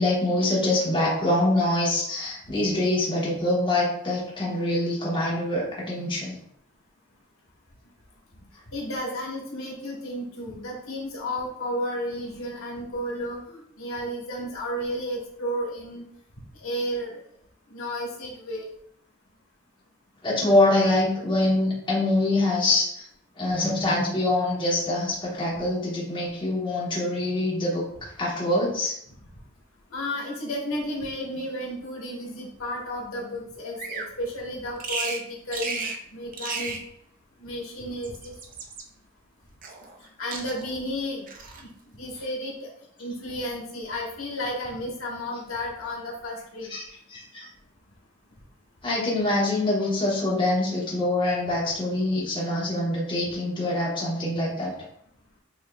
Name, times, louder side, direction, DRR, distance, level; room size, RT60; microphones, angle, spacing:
voice 1, 0.0-6.4 20.2-23.1 23.4-28.9 46.7-47.5 48.8-54.7, left 1 dB, 25° left, -6 dB, 1.1 m, -25 dB
voice 2, 8.7-16.0 16.6-17.2 17.7-18.7 29.9-36.8 37.4-38.3 40.2-41.3 41.6-41.7 41.9-42.7 43.0-46.7, equal, 90° left, -2 dB, 1.3 m, -32 dB
Bird vocalization bird call bird song, 33.8-34.1 34.8-35.2 35.5-36.0 36.3-36.8 37.9-38.8 39.6-40.1 40.3-40.8 41.3-41.6, right 4 dB, 40° right, 0.5 m, -34 dB
6.0 x 2.7 x 2.3 m, 0.71 s
head